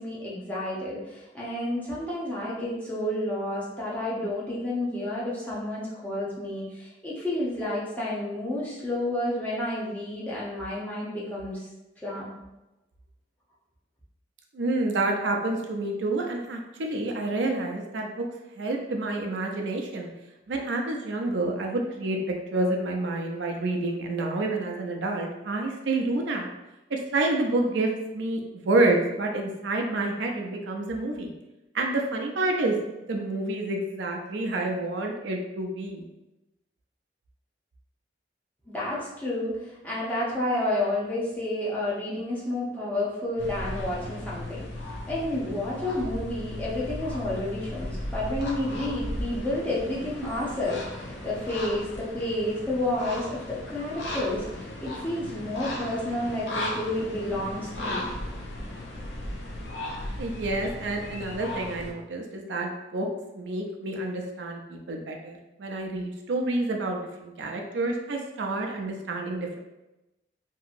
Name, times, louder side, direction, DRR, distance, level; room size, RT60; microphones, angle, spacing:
voice 1, 0.0-11.7 12.0-12.3 38.7-44.7 45.1-58.1, left 1 dB, 10° left, -8 dB, 0.7 m, -30 dB
voice 2, 14.5-18.2 18.6-20.1 20.5-22.2 22.5-26.5 26.9-31.3 31.7-32.8 33.1-36.0 60.0-63.1 63.3-69.6, right 2 dB, 85° right, 2 dB, 0.5 m, -28 dB
sound 1, 43.4-61.9, left 1 dB, 85° left, 0.6 m, -36 dB
2.9 x 2.7 x 2.5 m, 0.96 s
head